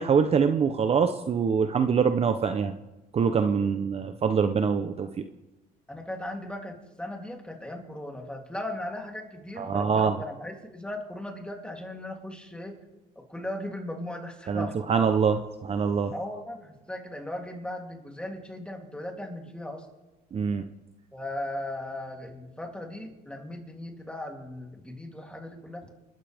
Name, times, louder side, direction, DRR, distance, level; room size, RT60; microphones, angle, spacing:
voice 1, 0.0-2.7 3.1-5.3 9.6-10.2 14.5-16.1 20.3-20.6, right 6 dB, 35° right, 8 dB, 0.8 m, -24 dB
voice 2, 5.9-12.8 13.1-14.8 16.1-19.9 21.1-25.9, left 1 dB, 5° left, 1 dB, 3.2 m, -37 dB
29.0 x 13.0 x 3.6 m, 1.0 s
cardioid pair, 110°, 17 cm